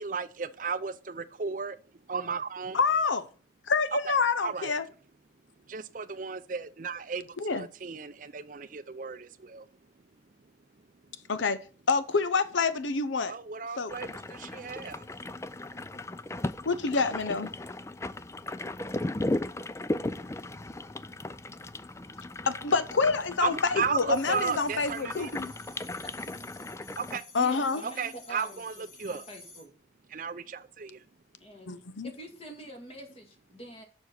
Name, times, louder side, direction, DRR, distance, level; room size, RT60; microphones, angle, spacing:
voice 1, 0.0-1.8 2.1-2.8 4.4-4.7 5.7-9.7 13.3-15.1 23.4-25.3 27.0-27.2 27.8-29.3 30.1-31.0, right 5 dB, 45° right, 0.5 m, -35 dB
voice 2, 2.7-3.3 3.7-4.8 7.4-7.7 11.3-11.6 11.9-13.3 13.8-13.9 16.6-17.5 22.5-25.5 27.3-27.8 31.7-32.1, left 4 dB, 85° left, 0.7 m, -27 dB
sound 1, 13.9-27.2, left 2 dB, 15° left, 0.4 m, -37 dB
sound 2, 24.1-29.7, left 3 dB, 50° left, 4.6 m, -51 dB
voice 3, 27.4-29.7 31.4-31.8 32.0-33.8, right 1 dB, 30° left, 2.1 m, -46 dB
7.1 x 6.2 x 5.8 m
head